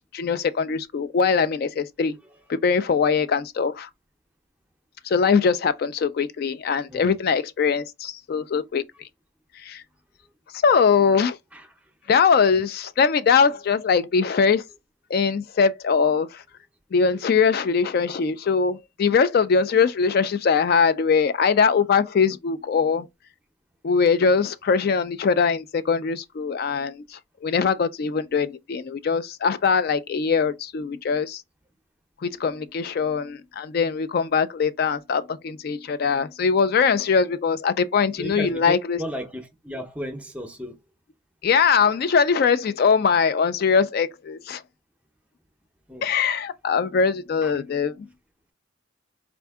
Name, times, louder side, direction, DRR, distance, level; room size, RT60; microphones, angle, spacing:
voice 1, 0.1-2.2 2.5-3.9 5.0-8.8 9.6-9.8 10.5-11.4 12.1-14.6 15.1-16.4 16.9-23.1 23.8-31.4 32.2-39.0 41.4-44.6 46.0-48.1, left 5 dB, 50° left, 0.3 m, -22 dB
voice 2, 38.2-40.8 45.9-46.1 47.4-47.5, equal, 5° right, 0.7 m, -34 dB
4.4 x 2.5 x 3.5 m
head